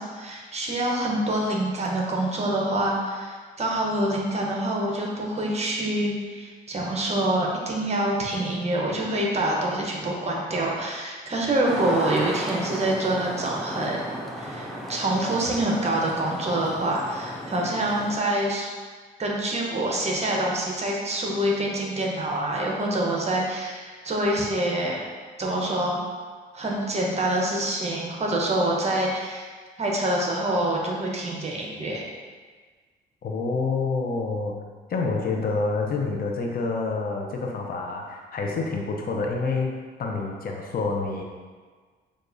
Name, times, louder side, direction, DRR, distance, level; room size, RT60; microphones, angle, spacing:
voice 1, 0.0-14.0 14.4-18.7 19.2-25.0 25.4-26.0 26.5-29.5 29.8-32.1, right 1 dB, 35° right, -2 dB, 0.8 m, -26 dB
sound 1, 11.7-18.2, equal, ahead, 0.5 m, -34 dB
voice 2, 33.2-34.5 34.9-39.7 40.0-41.2, left 3 dB, 50° left, 0 dB, 0.6 m, -27 dB
6.4 x 2.4 x 2.6 m, 1.5 s
cardioid pair, 90°, 20 cm